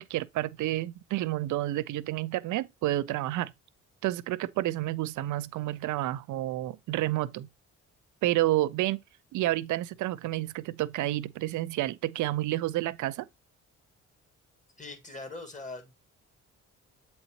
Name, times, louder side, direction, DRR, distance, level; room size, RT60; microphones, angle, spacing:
voice 1, 0.0-3.5 4.0-7.5 8.2-9.0 9.3-13.3, right 15 dB, 75° right, 0.5 m, -30 dB
voice 2, 14.8-15.9, left 2 dB, 25° left, 1.7 m, -41 dB
7.9 x 4.1 x 2.9 m
cardioid pair, 90°, 30 cm